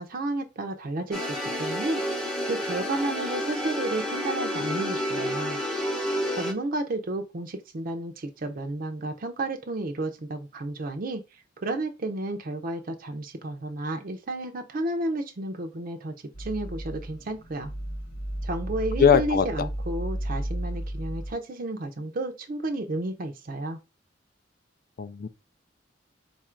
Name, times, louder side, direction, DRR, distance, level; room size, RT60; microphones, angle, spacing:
voice 1, 0.0-2.0 2.5-5.6 6.3-11.2 11.6-17.7 18.4-23.8, right 2 dB, 50° right, 0.5 m, -32 dB
sound 1, 1.1-6.5, equal, 5° left, 0.7 m, -30 dB
sound 2, 16.3-21.3, right 1 dB, 90° left, 1.2 m, -33 dB
voice 2, 19.0-19.4 25.0-25.3, left 7 dB, 50° left, 0.4 m, -20 dB
4.0 x 2.5 x 4.3 m
head